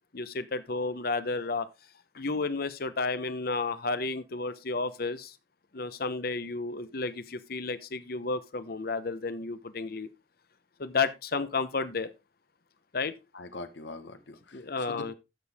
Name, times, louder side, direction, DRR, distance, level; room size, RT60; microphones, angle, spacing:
voice 1, 0.1-1.7 2.1-5.3 5.7-10.1 10.8-12.1 12.9-13.2 14.5-15.1, left 3 dB, 55° left, 0.9 m, -32 dB
voice 2, 13.3-15.1, left 2 dB, 80° left, 1.4 m, -43 dB
13.0 x 6.4 x 3.5 m
head